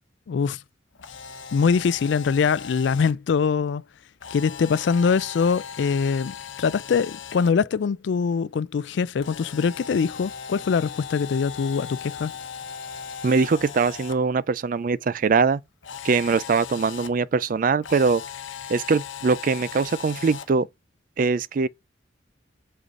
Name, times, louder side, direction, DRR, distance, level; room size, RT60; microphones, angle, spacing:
voice 1, 0.3-0.6 1.5-3.8 4.3-12.3, left 5 dB, 65° left, 0.3 m, -23 dB
Camera, 0.9-3.1 4.2-7.5 9.2-14.1 15.8-17.1 17.8-20.5, left 7 dB, 85° left, 0.9 m, -38 dB
voice 2, 13.2-15.6 16.0-18.2 18.7-20.7 21.2-21.7, right 4 dB, 45° right, 0.3 m, -22 dB
8.1 x 5.4 x 2.5 m
head